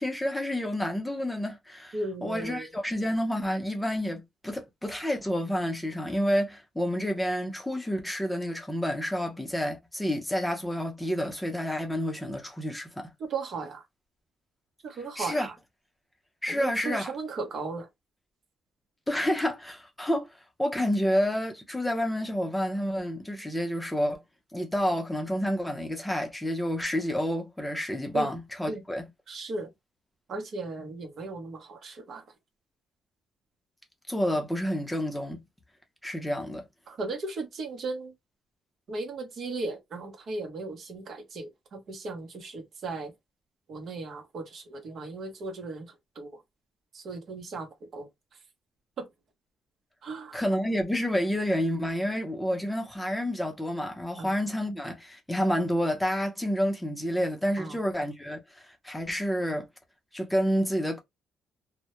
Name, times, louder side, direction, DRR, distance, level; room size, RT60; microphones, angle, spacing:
voice 1, 0.0-13.1 15.2-15.5 16.4-17.2 19.1-24.2 24.5-29.1 34.1-35.4 36.0-36.6 50.3-59.7 60.1-61.0, equal, 5° left, 0.6 m, -29 dB
voice 2, 1.9-2.7 13.3-13.8 14.8-15.5 16.5-17.8 28.1-28.3 28.7-28.8 29.3-29.7 30.3-32.2 36.9-38.1 38.9-43.1 43.7-45.9 46.2-46.3 46.9-47.7 47.9-48.1 49.0-49.1 50.0-50.4 54.2-54.3 57.6-57.7, right 3 dB, 60° right, 0.7 m, -36 dB
2.1 x 2.1 x 2.9 m
cardioid pair, 90°, 0 cm